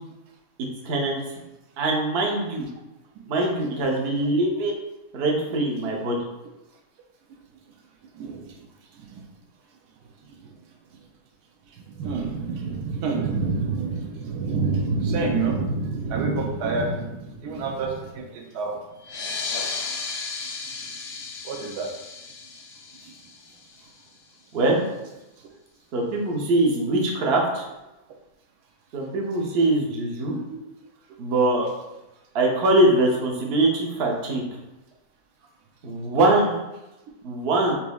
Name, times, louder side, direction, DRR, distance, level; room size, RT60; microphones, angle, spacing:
voice 1, 0.8-1.2 1.8-2.7 3.3-4.8 5.1-6.2 24.5-24.8 25.9-27.7 28.9-30.4 31.2-31.7 32.3-34.4 35.8-36.6 37.2-37.7, right 2 dB, 55° right, -1 dB, 0.7 m, -22 dB
voice 2, 8.2-8.5 9.0-9.2 10.4-10.5 11.8-18.8 21.4-21.9, right 4 dB, 85° right, 2 dB, 1.1 m, -27 dB
sound 1, 19.0-24.1, left 4 dB, 75° left, 1.0 m, -34 dB
4.2 x 2.7 x 2.3 m, 0.98 s
omnidirectional pair, 1.6 m